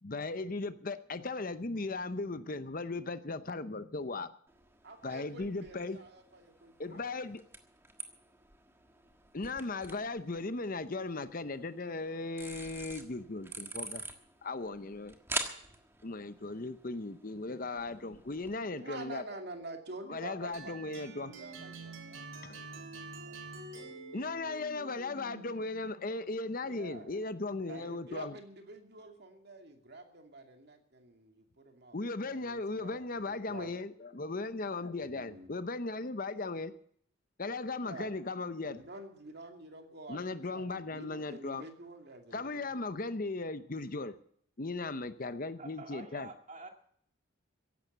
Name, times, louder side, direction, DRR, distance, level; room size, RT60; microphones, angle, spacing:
voice 1, 0.0-4.3 5.0-6.0 6.8-7.4 9.3-14.0 14.4-15.2 16.0-19.2 20.1-21.3 22.4-22.6 24.1-28.3 31.9-36.7 37.4-38.8 40.1-41.7 42.3-44.2 44.6-46.3, left 3 dB, 40° left, 12 dB, 0.8 m, -37 dB
sound 1, 4.5-18.6, right 2 dB, 10° right, 1.5 m, -46 dB
voice 2, 4.8-7.0 18.5-24.4 26.6-32.0 32.3-33.7 35.0-35.5 37.8-38.1 38.6-40.2 40.5-42.8, right 2 dB, 50° right, 4 dB, 2.5 m, -49 dB
sound 2, 20.5-25.6, right 3 dB, 70° right, 3.0 m, -47 dB
voice 3, 45.3-46.7, right 2 dB, 35° right, 5 dB, 2.2 m, -48 dB
15.5 x 11.5 x 6.8 m, 0.64 s
head